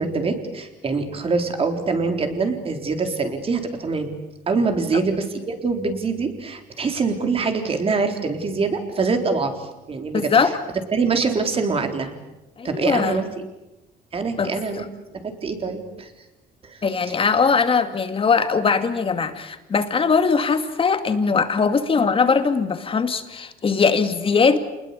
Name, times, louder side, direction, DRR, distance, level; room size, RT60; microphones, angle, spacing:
voice 1, 0.0-4.1 4.5-10.5 10.9-12.1 12.6-13.3 14.1-14.8 15.2-16.1 16.6-17.2, right 4 dB, 35° right, 5 dB, 4.0 m, -24 dB
voice 2, 10.1-10.5 12.6-13.1 14.4-14.9 16.8-24.6, left 5 dB, 30° left, 8 dB, 2.3 m, -20 dB
28.0 x 20.5 x 8.5 m, 0.99 s
cardioid pair, 110°, 17 cm